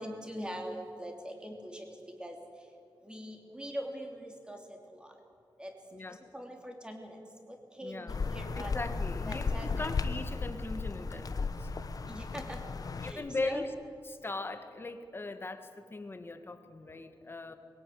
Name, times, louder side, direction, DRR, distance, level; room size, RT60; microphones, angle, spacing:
voice 1, 0.0-2.4 3.0-5.1 5.6-5.7 6.3-7.2 7.5-8.8 9.3-9.8 12.1-12.6 13.0-13.7, equal, 10° right, 3 dB, 3.1 m, -42 dB
voice 2, 5.9-6.2 7.8-8.2 8.6-11.7 13.0-13.7 14.0-17.6, left 3 dB, 25° left, 8 dB, 1.6 m, -40 dB
sound 1, 8.1-13.1, left 4 dB, 45° left, 1.1 m, -35 dB
22.0 x 17.5 x 9.3 m, 2.4 s
wide cardioid pair, 135°, 8 cm